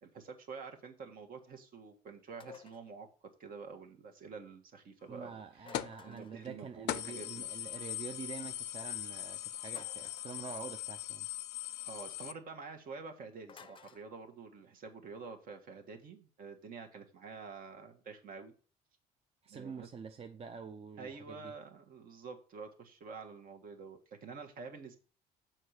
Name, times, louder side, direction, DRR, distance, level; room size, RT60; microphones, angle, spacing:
voice 1, 0.0-3.1 3.4-5.7 6.0-7.5 11.8-18.5 19.5-19.9 21.0-25.0, right 4 dB, 60° right, 1.5 m, -48 dB
sound 1, 2.4-2.9 5.6-6.5 9.7-10.4 13.5-14.1, left 7 dB, 30° left, 0.6 m, -53 dB
voice 2, 5.1-11.3 19.4-21.5, right 6 dB, 35° right, 0.6 m, -46 dB
sound 2, 5.7-6.0 6.4-6.5 6.9-12.3, left 14 dB, 85° left, 0.5 m, -40 dB
6.6 x 4.6 x 6.6 m
cardioid pair, 110°, 17 cm